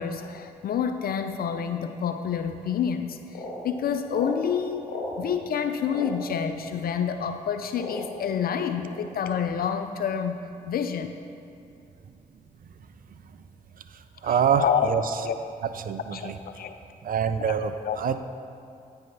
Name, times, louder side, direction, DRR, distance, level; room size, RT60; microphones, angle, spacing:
voice 1, 0.0-4.9 5.2-10.4 10.7-11.2 14.2-14.9 15.2-15.4 16.1-16.8 17.5-17.6 17.8-18.0, left 7 dB, 60° left, 8 dB, 0.4 m, -28 dB
sound 1, 2.6-2.7 3.3-3.6 4.1-4.3 4.8-5.1 5.9-6.1 7.0-7.1 7.7-8.2 8.8-9.0, left 2 dB, 85° left, 1.5 m, -35 dB
voice 2, 14.2-14.6 14.9-15.0 15.8-16.3 17.0-18.2, right 8 dB, 55° right, 10 dB, 0.5 m, -25 dB
9.0 x 3.4 x 5.6 m, 2.5 s
supercardioid pair, 45°, 18 cm